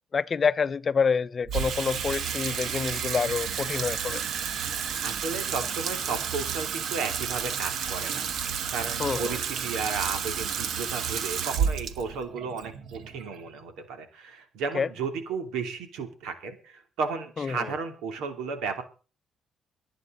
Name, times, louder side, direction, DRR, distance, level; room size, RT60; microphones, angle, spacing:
voice 1, 0.1-4.2 9.0-9.4 14.7-14.9 17.4-17.7, left 5 dB, 40° left, 0.6 m, -27 dB
Water tap faucet / Sink (filling or washing), 1.4-13.8, right 7 dB, 70° right, 1.4 m, -31 dB
voice 2, 5.0-8.2 8.7-18.8, right 5 dB, 90° right, 3.0 m, -34 dB
23.5 x 9.4 x 3.9 m
cardioid pair, 90°, 0 cm